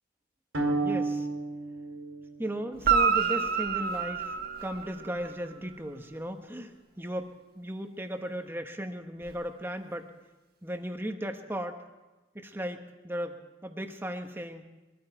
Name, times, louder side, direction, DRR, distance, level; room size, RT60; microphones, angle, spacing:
sound 1, 0.5-2.9, right 3 dB, 80° right, 3.6 m, -32 dB
voice 1, 0.8-1.3 2.4-10.1 10.6-11.8 12.3-14.6, equal, 10° right, 6 dB, 1.1 m, -36 dB
Guitar, 2.8-5.4 9.2-9.3, right 6 dB, 50° right, 1.0 m, -27 dB
22.5 x 13.5 x 4.6 m, 1.1 s
head